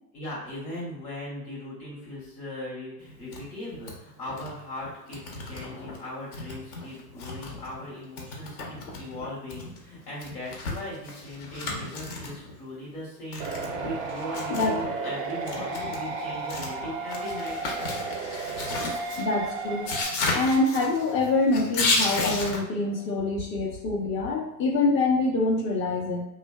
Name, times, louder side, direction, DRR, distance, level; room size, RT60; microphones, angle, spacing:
voice 1, 0.1-17.6, left 1 dB, 80° left, -6 dB, 1.2 m, -39 dB
sound 1, 3.1-3.5 3.7-4.0 4.3-4.6 4.8-6.0 6.3-7.9 8.2-12.6 13.3-14.9 15.3-22.6, left 3 dB, 60° left, 0.8 m, -33 dB
sound 2, 13.4-20.0, right 3 dB, 30° right, 0.3 m, -33 dB
voice 2, 18.8-19.9 20.3-26.2, left 3 dB, 25° left, -1 dB, 0.5 m, -25 dB
2.5 x 2.2 x 2.2 m, 0.89 s
hypercardioid pair, 100°, 48 cm